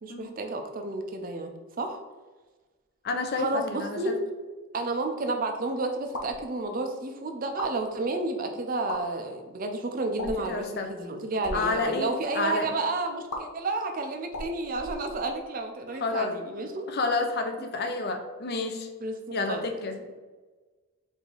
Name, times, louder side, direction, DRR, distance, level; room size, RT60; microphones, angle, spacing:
voice 1, 0.0-2.0 3.4-4.2 4.7-16.9 19.0-19.6, right 2 dB, 40° right, 5 dB, 0.5 m, -31 dB
voice 2, 3.0-4.1 10.2-10.9 11.5-12.8 16.0-16.3 16.9-18.9 19.3-20.0, left 3 dB, 45° left, 5 dB, 0.5 m, -30 dB
sound 1, 6.0-6.4 7.4-7.7 8.7-9.0 10.1-10.5 11.3-11.6 13.3-13.4 14.3-15.4, left 1 dB, 85° left, 0.8 m, -37 dB
4.7 x 2.7 x 3.9 m, 1.3 s
head